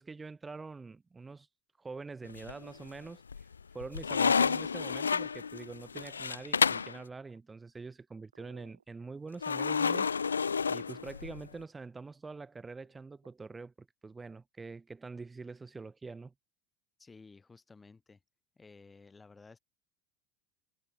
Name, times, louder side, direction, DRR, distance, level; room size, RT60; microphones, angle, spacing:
voice 1, 0.0-1.5 1.8-16.3, right 4 dB, 15° right, 1.5 m, -45 dB
sound 1, 2.3-2.9 3.3-7.0 9.4-11.5, left 6 dB, 90° left, 0.4 m, -30 dB
sound 2, 7.1-10.7 12.8-13.4, right 6 dB, 85° right, 2.3 m, -64 dB
voice 2, 17.0-18.2 18.6-19.6, left 4 dB, 20° left, 4.7 m, -55 dB
hypercardioid pair, 80°, 0 cm